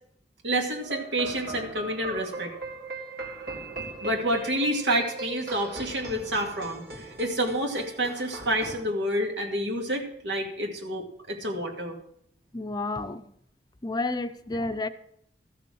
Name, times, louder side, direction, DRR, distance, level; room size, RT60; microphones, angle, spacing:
voice 1, 0.4-2.5 4.0-12.0, right 1 dB, 90° right, 2 dB, 2.3 m, -29 dB
sound 1, 0.8-8.8, right 2 dB, 65° right, 2.6 m, -39 dB
voice 2, 12.5-13.3 13.8-14.9, left 2 dB, 25° left, 10 dB, 0.6 m, -30 dB
14.0 x 6.9 x 6.3 m, 0.71 s
head